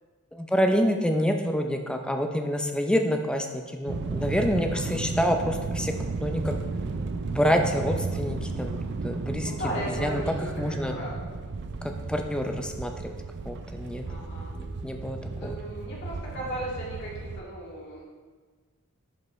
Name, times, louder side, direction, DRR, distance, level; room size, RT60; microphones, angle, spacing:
voice 1, 0.3-5.9 6.2-6.5 7.3-9.5 10.0-11.0 12.1-13.2 13.5-14.0 14.5-15.6, equal, 5° left, 4 dB, 0.5 m, -27 dB
sound 1, 3.9-17.4, right 3 dB, 55° right, 0.5 m, -34 dB
voice 2, 9.4-11.4 14.0-14.6 15.3-18.0, equal, 55° left, -6 dB, 2.3 m, -36 dB
10.5 x 5.3 x 3.2 m, 1.4 s
head